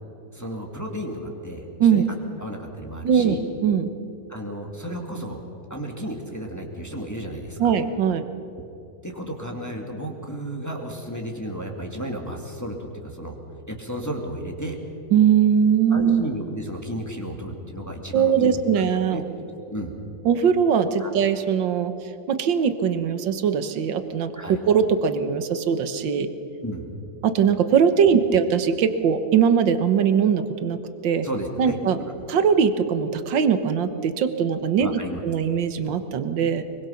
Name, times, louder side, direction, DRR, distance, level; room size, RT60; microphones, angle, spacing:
voice 1, 0.3-2.0 2.4-3.4 4.3-5.4 5.7-7.7 9.0-13.4 13.7-14.8 15.9-18.6 19.1-19.2 19.7-19.9 21.0-21.1 24.4-24.6 26.6-26.9 31.2-32.1 34.8-35.2, equal, 10° left, 1 dB, 2.3 m, -33 dB
voice 2, 3.0-3.4 3.6-3.9 7.6-8.3 15.1-16.2 18.1-19.2 20.3-21.9 22.3-26.3 27.2-31.3 31.6-32.0 32.3-36.6, right 7 dB, 70° right, 10 dB, 1.9 m, -21 dB
24.0 x 23.5 x 5.8 m, 3.0 s
omnidirectional pair, 2.1 m